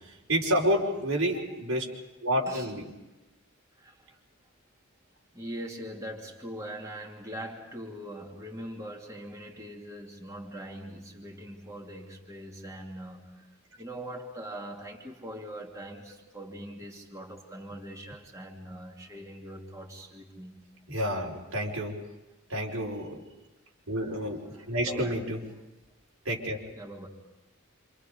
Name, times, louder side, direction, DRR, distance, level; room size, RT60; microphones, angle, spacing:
voice 1, 0.3-1.9 2.2-2.9 20.9-22.0 22.5-23.2 23.9-25.4 26.2-26.6, equal, 90° right, -2 dB, 4.9 m, -29 dB
voice 2, 3.8-4.1 5.3-13.5 13.8-20.6 24.4-25.2 26.8-27.1, right 1 dB, 15° right, -2 dB, 2.7 m, -42 dB
28.0 x 27.5 x 5.1 m, 1.0 s
head